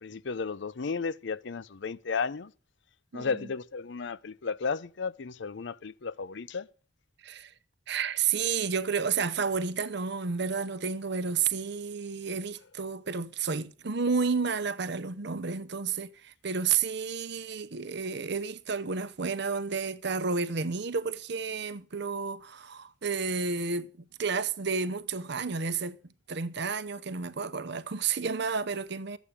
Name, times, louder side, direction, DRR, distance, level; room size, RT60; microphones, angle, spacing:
voice 1, 0.0-2.5 3.1-6.7, left 5 dB, 60° left, 0.6 m, -34 dB
voice 2, 3.1-3.5 7.2-7.5 7.9-23.9 24.2-26.0 26.3-29.2, right 5 dB, 60° right, 0.7 m, -31 dB
13.0 x 8.2 x 7.2 m
head